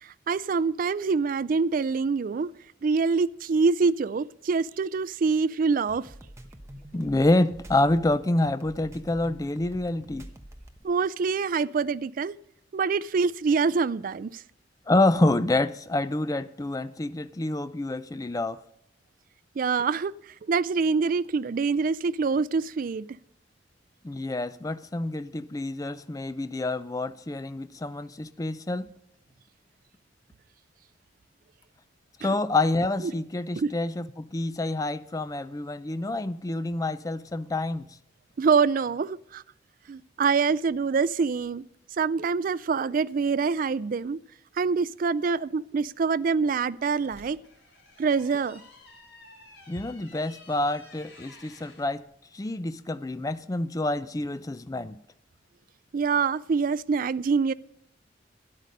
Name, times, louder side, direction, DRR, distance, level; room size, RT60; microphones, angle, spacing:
voice 1, 0.0-2.5 2.8-6.1 10.8-12.4 12.7-14.4 19.6-20.1 20.5-23.1 32.2-32.3 33.0-33.1 33.6-33.7 38.4-39.4 39.9-41.6 42.0-44.2 44.6-47.4 48.0-48.6 55.9-57.5, right 5 dB, 45° right, 0.3 m, -25 dB
sound 1, 5.7-10.8, equal, 15° right, 1.0 m, -46 dB
voice 2, 6.9-10.3 14.9-18.6 24.0-28.9 32.2-37.9 49.7-52.0 52.3-55.0, left 2 dB, 20° left, 0.4 m, -27 dB
sound 2, 46.8-51.9, left 2 dB, 75° left, 3.9 m, -52 dB
12.5 x 9.7 x 5.3 m
head